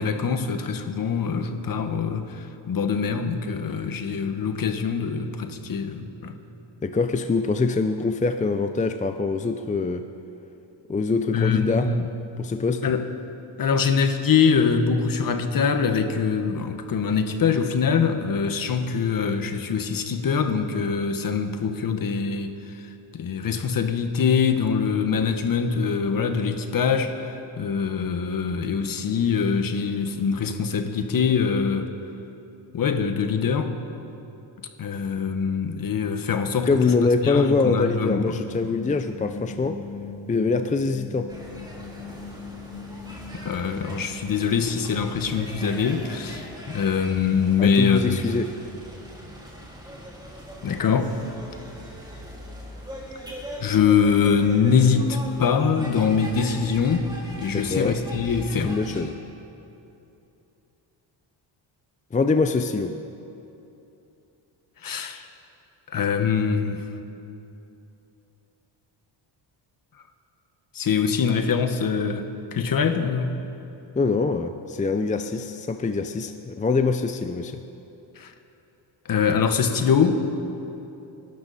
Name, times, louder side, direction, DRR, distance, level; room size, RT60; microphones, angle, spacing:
voice 1, 0.0-6.4 11.3-12.0 12.8-13.1 13.6-22.5 23.1-31.9 32.7-33.7 34.8-36.7 37.2-38.4 43.3-48.2 50.6-51.1 53.6-57.1 57.4-58.8 64.8-65.2 65.9-66.8 70.7-73.4 78.2-78.3 79.0-80.3, left 6 dB, 45° left, 7 dB, 1.3 m, -23 dB
voice 2, 6.8-10.1 10.9-11.9 12.4-12.8 36.6-39.8 40.3-41.3 47.6-48.5 57.5-58.0 58.6-59.2 62.1-62.9 74.0-77.6, left 4 dB, 15° left, 7 dB, 0.5 m, -24 dB
sound 1, 38.5-50.1, left 4 dB, 85° left, 3.1 m, -42 dB
sound 2, 41.3-59.0, equal, 10° right, 3.0 m, -41 dB
27.5 x 12.0 x 4.2 m, 2.9 s
cardioid pair, 115°, 46 cm